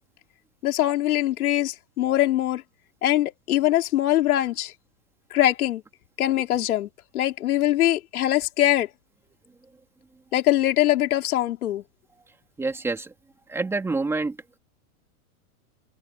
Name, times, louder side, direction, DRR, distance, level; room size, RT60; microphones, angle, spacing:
voice 1, 0.6-2.6 3.0-4.7 5.3-5.8 6.2-6.9 7.1-8.9 10.3-11.8, left 13 dB, 75° left, 3.9 m, -22 dB
voice 2, 12.6-13.1 13.5-14.4, right 3 dB, 5° right, 2.6 m, -27 dB
supercardioid pair, 180°, 44 cm